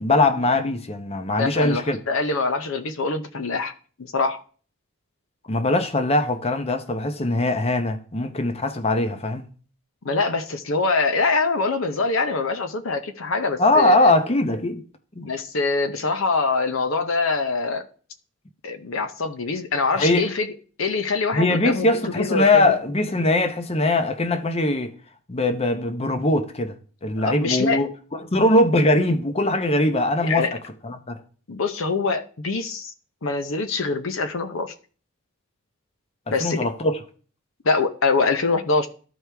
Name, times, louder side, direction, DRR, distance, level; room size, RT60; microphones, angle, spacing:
voice 1, 0.0-2.0 5.5-9.5 13.6-14.8 15.2-15.3 20.0-20.3 21.3-24.9 25.3-26.7 27.0-27.9 28.3-30.5 30.8-31.2 36.4-37.0, left 2 dB, 30° left, 0.7 m, -21 dB
voice 2, 1.4-3.7 4.0-4.4 10.0-14.1 15.2-17.9 18.6-20.5 20.8-22.6 27.2-27.8 30.2-30.5 31.5-32.9 33.2-34.7 36.3-36.7 37.6-38.9, left 4 dB, 70° left, 0.7 m, -24 dB
13.5 x 4.6 x 3.4 m
head